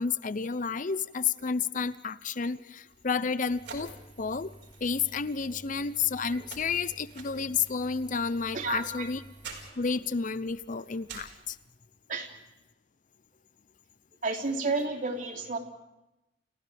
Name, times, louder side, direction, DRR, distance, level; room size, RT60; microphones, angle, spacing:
voice 1, 0.0-3.9 4.2-4.5 4.8-9.2 9.8-11.6, left 5 dB, 45° left, 15 dB, 0.7 m, -31 dB
sound 1, 2.9-11.6, right 5 dB, 75° right, 4.9 m, -50 dB
Engine, 3.5-9.7, right 1 dB, 35° right, 3.3 m, -52 dB
voice 2, 8.5-9.1 12.1-12.4 14.2-15.6, right 3 dB, 50° right, 2 dB, 3.5 m, -32 dB
30.0 x 29.5 x 3.5 m, 0.93 s
head